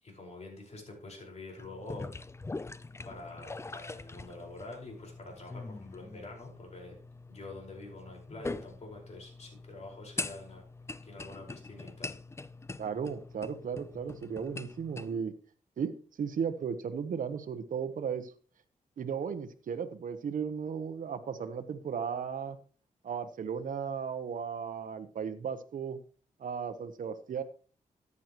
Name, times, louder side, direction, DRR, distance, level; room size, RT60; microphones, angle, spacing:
voice 1, 0.0-2.2 3.0-7.0 7.3-10.6 11.0-12.1, left 2 dB, 50° left, 0 dB, 4.9 m, -46 dB
sound 1, 1.6-15.2, left 3 dB, 20° left, 0.5 m, -43 dB
voice 2, 12.8-15.3 15.8-15.9 16.2-18.3 19.0-22.6 23.0-26.0 26.4-27.4, right 7 dB, 70° right, 8 dB, 1.0 m, -35 dB
14.0 x 9.6 x 3.0 m, 0.40 s
cardioid pair, 90°, 14 cm